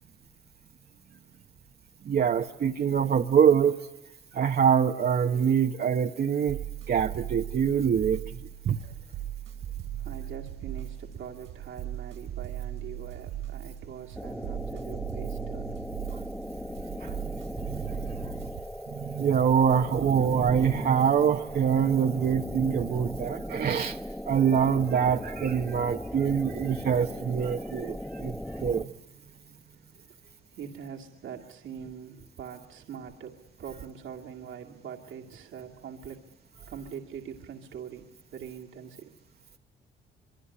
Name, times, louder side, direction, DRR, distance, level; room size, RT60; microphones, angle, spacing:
voice 1, 2.0-3.8 4.3-6.6 6.9-8.2 8.6-8.8 16.1-16.2 17.0-17.1 17.6-18.3 18.9-24.0 24.3-28.9, right 7 dB, 50° right, 2 dB, 1.1 m, -25 dB
sound 1, 6.5-18.6, right 11 dB, 90° right, 4.1 m, -38 dB
voice 2, 10.0-15.8 28.0-28.1 30.5-36.3 36.7-39.2, right 8 dB, 75° right, 0 dB, 2.2 m, -43 dB
sound 2, 14.1-28.8, equal, 5° left, 1.0 m, -38 dB
25.0 x 24.0 x 9.8 m, 0.89 s
cardioid pair, 90°, 20 cm